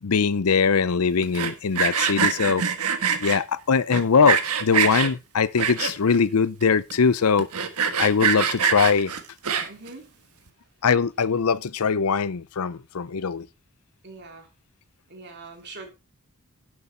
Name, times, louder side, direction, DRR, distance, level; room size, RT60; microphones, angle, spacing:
voice 1, 0.0-2.6 3.2-7.5 8.0-9.1 10.8-13.5, left 5 dB, 75° left, 0.6 m, -21 dB
Sawing, 1.2-3.4 3.9-5.1 5.6-6.2 6.6-6.7 6.9-7.0 7.4-9.9, right 7 dB, 80° right, 1.5 m, -24 dB
voice 2, 9.6-10.1 14.0-14.5 15.1-15.9, right 3 dB, 50° right, 3.2 m, -42 dB
11.0 x 8.0 x 4.3 m
head